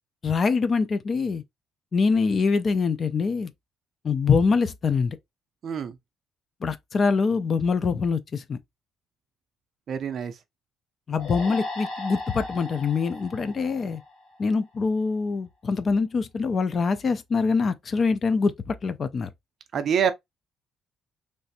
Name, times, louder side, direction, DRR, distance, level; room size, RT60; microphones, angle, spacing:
voice 1, 0.2-1.4 1.9-3.5 4.0-5.2 6.6-8.6 11.1-14.0 14.4-19.3, left 5 dB, 30° left, 0.3 m, -24 dB
voice 2, 5.6-6.0 9.9-10.4 19.7-20.1, right 7 dB, 45° right, 0.4 m, -25 dB
sound 1, 11.2-14.6, left 2 dB, 75° left, 1.9 m, -37 dB
3.2 x 2.5 x 2.7 m
cardioid pair, 160°, 0 cm